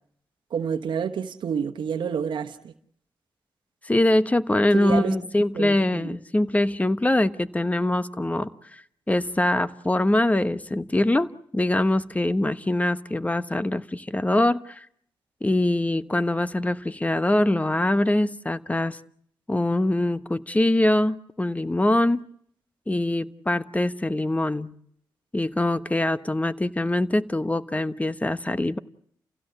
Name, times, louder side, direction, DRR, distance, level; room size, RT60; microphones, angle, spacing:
voice 1, 0.5-2.7 4.7-5.1 5.5-6.1, right 7 dB, 75° right, 1.2 m, -29 dB
voice 2, 3.8-14.9 15.4-19.0 19.5-22.2 22.9-24.7 25.3-28.8, left 1 dB, 20° left, 1.2 m, -23 dB
29.5 x 16.5 x 8.0 m
cardioid pair, 55°, 8 cm